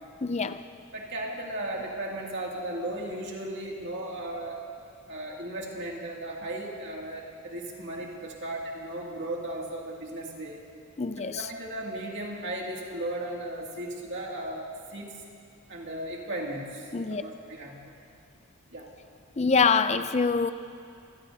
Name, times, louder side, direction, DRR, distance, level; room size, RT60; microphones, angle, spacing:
voice 1, 0.2-0.7 11.0-11.5 16.9-17.2 19.4-20.5, left 5 dB, 30° left, 11 dB, 0.5 m, -25 dB
voice 2, 0.9-4.6 5.1-10.6 11.3-15.2 15.7-17.8 18.7-18.9, right 1 dB, 55° right, -2 dB, 2.5 m, -36 dB
26.5 x 17.0 x 2.8 m, 2.6 s
head